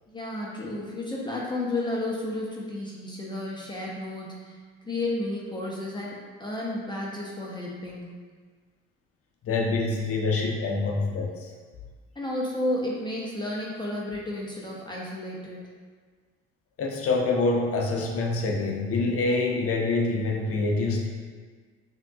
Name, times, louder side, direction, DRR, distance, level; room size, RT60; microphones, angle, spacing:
voice 1, 0.1-4.6 4.8-8.2 12.1-15.6, left 1 dB, 15° left, -4 dB, 0.8 m, -32 dB
voice 2, 9.4-11.5 16.8-21.1, left 3 dB, 50° left, 0 dB, 0.8 m, -26 dB
5.6 x 2.9 x 2.4 m, 1.5 s
hypercardioid pair, 65°, 30 cm